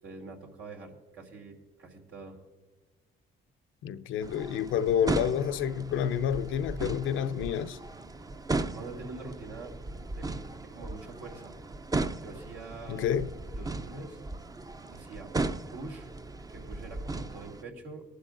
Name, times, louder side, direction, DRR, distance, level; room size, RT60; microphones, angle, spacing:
voice 1, 0.0-2.4 8.7-9.7 10.1-11.6 12.2-13.1 13.5-14.2 14.9-15.3 15.7-16.1 16.5-18.1, right 3 dB, 85° right, 2.7 m, -44 dB
voice 2, 3.8-7.8 12.9-13.3, left 8 dB, 80° left, 0.6 m, -29 dB
sound 1, 4.2-17.6, right 2 dB, 20° right, 0.5 m, -36 dB
23.0 x 11.5 x 2.5 m
cardioid pair, 90°, 20 cm